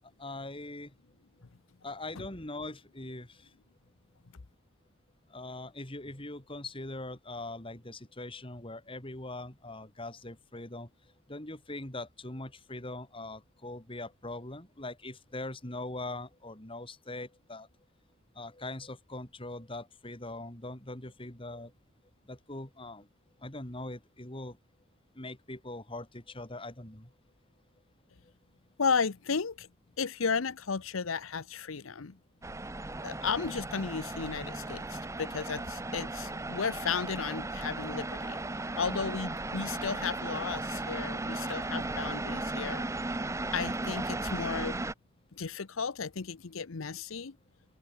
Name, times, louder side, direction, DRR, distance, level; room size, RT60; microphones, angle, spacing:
voice 1, 0.0-0.9 1.8-3.5 5.3-10.9 11.3-17.7 18.3-21.7 22.2-23.1 23.4-24.6 25.1-27.1, left 2 dB, 25° left, 3.2 m, -42 dB
voice 2, 28.8-29.7 30.0-32.2 33.0-38.4 38.8-42.8 43.5-44.7 45.4-47.3, left 5 dB, 90° left, 0.8 m, -34 dB
sound 1, 32.4-44.9, right 2 dB, 15° right, 0.7 m, -36 dB
head